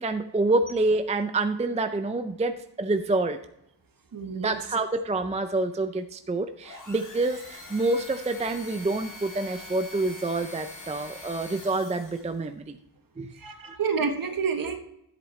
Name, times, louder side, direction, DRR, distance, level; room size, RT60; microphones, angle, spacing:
voice 1, 0.0-3.4 4.3-12.8 13.2-13.3, right 2 dB, 15° right, 8 dB, 0.4 m, -27 dB
voice 2, 4.1-4.6 13.3-14.8, right 5 dB, 50° right, 6 dB, 1.2 m, -29 dB
sound 1, 6.6-12.4, left 2 dB, 45° left, 2.3 m, -44 dB
13.5 x 8.2 x 3.1 m, 0.81 s
wide cardioid pair, 140°, 44 cm